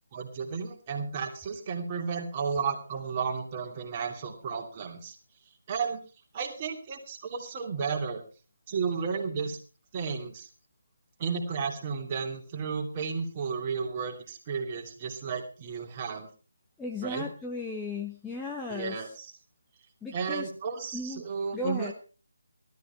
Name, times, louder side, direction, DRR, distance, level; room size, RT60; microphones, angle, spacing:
voice 1, 0.1-5.2 5.7-6.0 6.3-8.2 8.7-9.6 9.9-10.5 11.2-16.3 17.0-17.3 18.7-19.3 20.1-21.9, right 5 dB, 20° right, 2 dB, 2.6 m, -33 dB
voice 2, 16.8-19.1 20.0-20.5 20.9-21.2 21.5-21.9, left 3 dB, 5° left, -1 dB, 1.0 m, -35 dB
17.0 x 13.0 x 4.5 m, 0.36 s
figure-of-eight pair, 155°, 0 cm